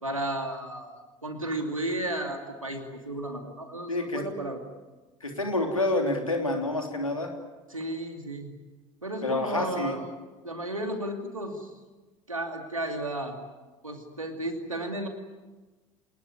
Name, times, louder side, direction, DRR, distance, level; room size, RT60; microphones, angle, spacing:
voice 1, 0.0-4.6 7.7-8.6 9.0-10.0 10.4-11.7 12.3-13.3 13.8-15.1, right 1 dB, 90° right, 4 dB, 2.6 m, -33 dB
voice 2, 3.9-4.2 5.2-7.3 9.2-10.0, left 2 dB, 90° left, 3 dB, 3.3 m, -28 dB
26.5 x 20.0 x 9.6 m, 1.2 s
figure-of-eight pair, 65°, 17 cm